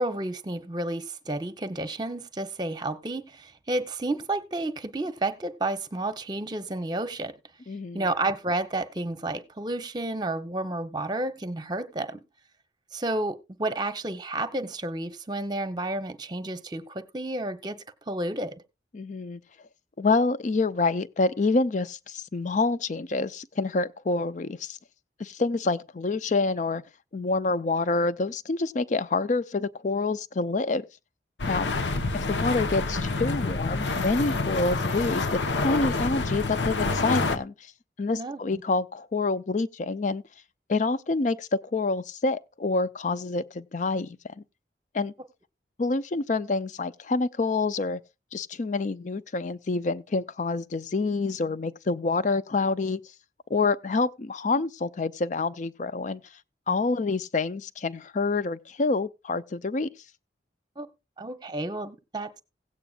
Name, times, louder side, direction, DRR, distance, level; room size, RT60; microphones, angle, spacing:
voice 1, 0.0-7.3 7.9-12.2 12.9-18.6 38.1-38.6 60.8-60.9 61.2-62.4, right 2 dB, 25° right, 0.8 m, -31 dB
voice 2, 7.7-8.1 18.9-19.4 20.0-24.8 25.2-26.8 27.1-30.9 31.5-31.7 32.1-37.5 38.0-40.2 40.7-44.4 44.9-45.1 45.8-48.0 48.3-53.0 53.5-56.2 56.7-59.9, left 3 dB, 40° left, 0.5 m, -27 dB
sound 1, 31.4-37.4, left 3 dB, 85° left, 0.9 m, -27 dB
17.0 x 8.5 x 2.4 m
head